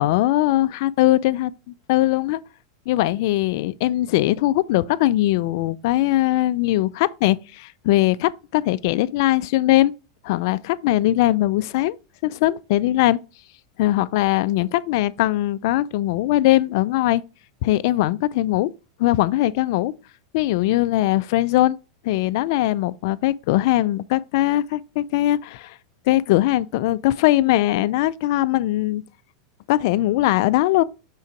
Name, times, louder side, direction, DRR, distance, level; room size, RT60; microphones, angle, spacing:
voice 1, 0.0-1.5 1.9-2.4 2.9-9.9 10.2-12.0 12.2-13.2 13.8-17.2 17.6-18.7 19.0-19.9 20.3-21.8 22.0-25.8 26.1-29.0 29.7-30.8, left 15 dB, 60° left, 0.4 m, -20 dB
5.7 x 3.8 x 4.4 m
supercardioid pair, 125°, 2 cm